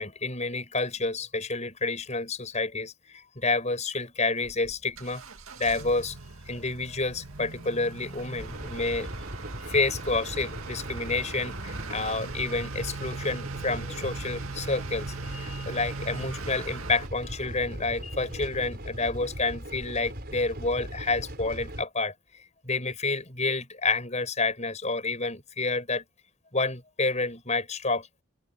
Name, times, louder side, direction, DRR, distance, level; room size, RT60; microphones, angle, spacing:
voice 1, 0.0-5.2 5.6-6.2 6.5-9.1 9.7-22.1 22.6-26.0 26.5-28.1, left 3 dB, 30° left, 6.8 m, -29 dB
Motor vehicle (road) / Accelerating revving vroom, 4.4-17.1, right 4 dB, 80° right, 2.2 m, -40 dB
sound 1, 8.4-21.8, right 1 dB, 45° right, 5.1 m, -39 dB
head